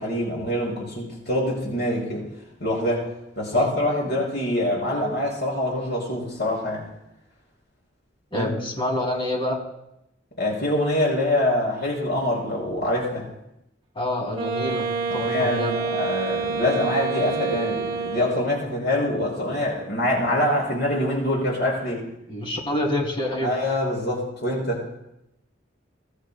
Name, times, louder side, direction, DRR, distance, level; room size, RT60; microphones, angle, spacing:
voice 1, 0.0-2.2 2.6-3.1 3.4-6.9 8.3-8.5 10.4-13.3 15.1-22.0 23.4-24.8, left 1 dB, 60° left, -2 dB, 5.9 m, -25 dB
voice 2, 8.3-9.6 13.9-15.8 22.3-23.6, left 1 dB, 30° left, 0 dB, 2.5 m, -27 dB
Wind instrument woodwind instrument, 14.3-18.7, right 4 dB, 30° right, 2.6 m, -28 dB
22.5 x 13.0 x 2.2 m, 0.85 s
head